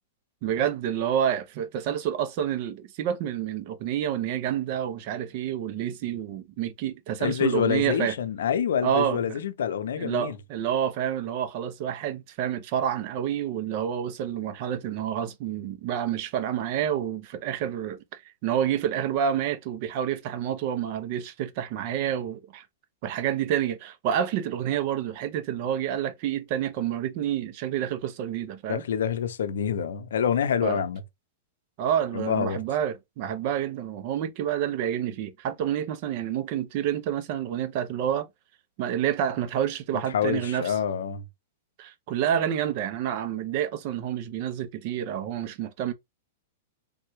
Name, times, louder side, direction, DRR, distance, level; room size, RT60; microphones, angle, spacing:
voice 1, 0.4-8.2 8.8-9.4 10.0-22.6 23.0-28.8 30.6-30.8 31.8-38.3 38.8-40.7 41.8-45.9, right 10 dB, 45° right, 0.6 m, -28 dB
voice 2, 7.2-10.4 28.7-31.0 32.1-32.6 40.1-41.2, left 8 dB, 85° left, 0.5 m, -27 dB
3.4 x 2.2 x 3.0 m
hypercardioid pair, 145°, 0 cm